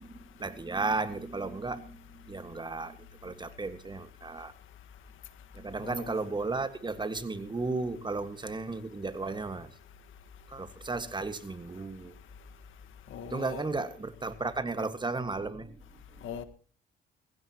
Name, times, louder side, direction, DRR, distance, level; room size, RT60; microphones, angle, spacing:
voice 1, 0.0-3.0 3.2-4.5 5.5-9.7 10.5-12.1 13.2-15.8, right 3 dB, 20° right, 1.7 m, -34 dB
voice 2, 5.8-6.2 13.1-13.7 16.2-16.4, left 8 dB, 80° left, 1.7 m, -40 dB
20.5 x 16.0 x 3.0 m
cardioid pair, 90°, 20 cm